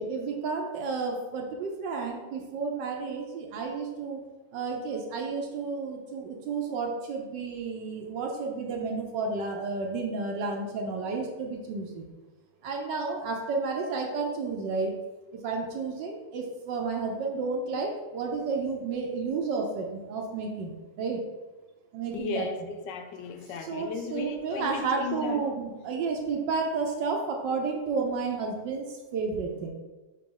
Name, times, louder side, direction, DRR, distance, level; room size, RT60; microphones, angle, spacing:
voice 1, 0.0-4.2 4.5-12.1 12.6-15.0 15.3-21.2 21.9-22.5 23.6-29.7, right 4 dB, 75° right, 1 dB, 1.4 m, -31 dB
voice 2, 22.1-25.4, left 5 dB, 70° left, 6 dB, 1.2 m, -35 dB
5.0 x 4.9 x 3.8 m, 1.2 s
omnidirectional pair, 2.1 m